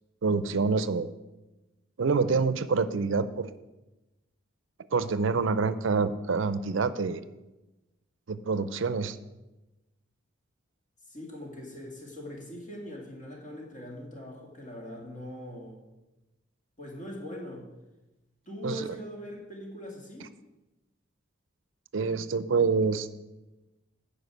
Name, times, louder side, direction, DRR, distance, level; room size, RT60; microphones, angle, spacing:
voice 1, 0.2-1.1 2.0-3.5 4.9-7.2 8.3-9.2 18.6-18.7 21.9-23.1, right 4 dB, 70° right, 14 dB, 0.5 m, -26 dB
voice 2, 11.1-15.8 16.8-17.7 18.5-20.3, equal, 40° left, -1 dB, 2.4 m, -41 dB
9.6 x 5.4 x 7.8 m, 1.0 s
head